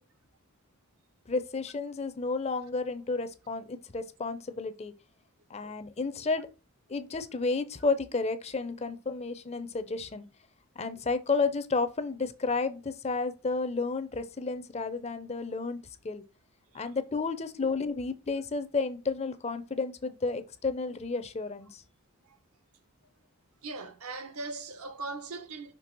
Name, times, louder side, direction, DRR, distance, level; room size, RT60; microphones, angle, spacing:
voice 1, 1.3-4.9 5.5-6.5 6.9-10.3 10.8-15.8 16.0-16.2 16.7-21.8, left 4 dB, 30° left, 0.5 m, -32 dB
voice 2, 23.6-25.7, right 3 dB, 80° right, 1.1 m, -39 dB
6.0 x 3.3 x 5.9 m
head